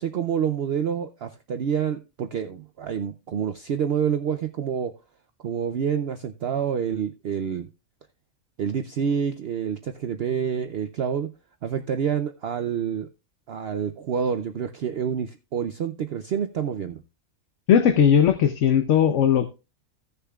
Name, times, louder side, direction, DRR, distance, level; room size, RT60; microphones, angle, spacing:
voice 1, 0.0-4.9 5.4-7.7 8.6-11.3 11.6-13.1 13.5-17.0, right 7 dB, 60° right, 0.7 m, -27 dB
voice 2, 17.7-19.5, left 8 dB, 65° left, 1.1 m, -18 dB
16.0 x 6.7 x 2.3 m
omnidirectional pair, 1.4 m